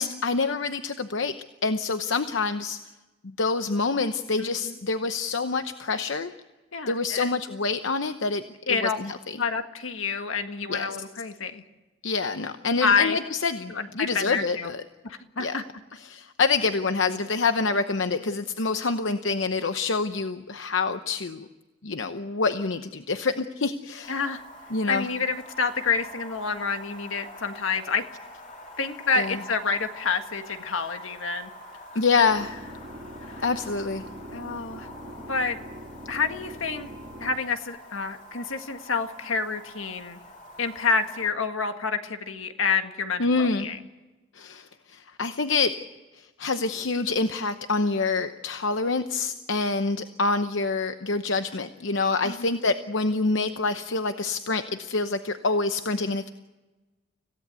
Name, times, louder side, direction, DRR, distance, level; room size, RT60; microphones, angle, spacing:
voice 1, 0.0-1.3 1.6-2.8 3.4-6.3 6.9-9.4 10.7-10.9 12.0-14.8 15.4-15.6 16.0-21.5 21.8-24.2 24.7-25.1 29.2-29.4 31.9-32.6 33.4-34.0 43.2-43.7 44.3-45.7 46.2-56.3, left 4 dB, 70° left, 8 dB, 0.9 m, -26 dB
voice 2, 4.4-4.7 6.7-7.4 8.7-9.0 9.4-11.6 12.8-13.2 13.7-14.7 15.0-15.6 24.1-24.4 24.9-28.0 28.8-31.5 33.2-33.4 34.3-34.9 35.3-35.6 36.1-36.9 37.2-40.2 40.6-43.8 52.2-52.5, left 5 dB, 85° left, 7 dB, 1.7 m, -28 dB
sound 1, 24.0-41.3, left 1 dB, 40° left, 2.9 m, -45 dB
sound 2, 32.3-37.3, right 1 dB, 40° right, 2.2 m, -43 dB
26.0 x 16.5 x 8.2 m, 1.1 s
head